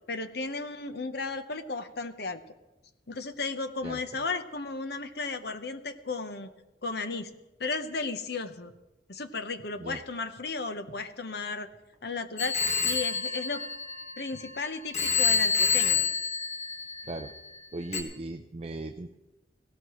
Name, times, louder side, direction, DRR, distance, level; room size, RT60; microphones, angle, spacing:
voice 1, 0.1-2.4 3.1-6.5 6.8-7.3 7.6-8.7 9.1-11.7 12.0-13.6 14.2-16.0, left 3 dB, 60° left, 10 dB, 0.9 m, -34 dB
Telephone, 12.4-14.5 14.9-17.3 17.9-18.0, left 5 dB, 35° left, 1.5 m, -27 dB
voice 2, 17.7-19.2, right 2 dB, 35° right, 5 dB, 0.5 m, -37 dB
17.5 x 17.0 x 3.1 m, 1.0 s
head